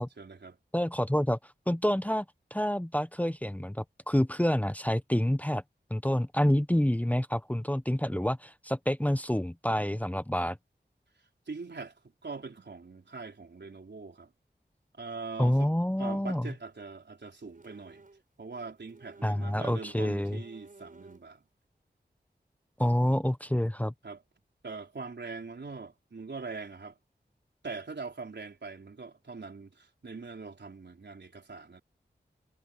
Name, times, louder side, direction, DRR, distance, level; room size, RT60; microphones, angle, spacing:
voice 1, 0.0-0.6 11.5-12.0 12.2-14.3 15.0-15.7 16.0-18.1 18.4-21.4 24.0-24.2 24.6-27.0 27.6-31.8, right 4 dB, 75° right, 4.1 m, -42 dB
voice 2, 0.7-1.4 1.7-2.2 2.5-5.6 5.9-10.6 15.4-16.5 19.2-20.4 22.8-23.9, equal, 10° left, 0.9 m, -28 dB
sound 1, 17.5-18.2 18.5-21.4, right 3 dB, 50° right, 4.5 m, -55 dB
wide cardioid pair, 50°, 18 cm